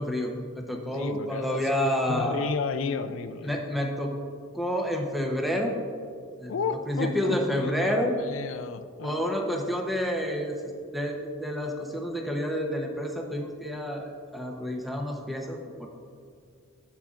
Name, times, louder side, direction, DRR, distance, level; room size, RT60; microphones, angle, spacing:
voice 1, 0.0-2.5 3.4-4.1 4.5-5.8 6.4-6.6 6.9-8.2 9.0-15.9, equal, ahead, 1 dB, 0.8 m, -29 dB
voice 2, 0.9-3.6 6.5-9.2, left 5 dB, 70° left, 9 dB, 0.4 m, -33 dB
11.5 x 8.4 x 2.5 m, 2.3 s
head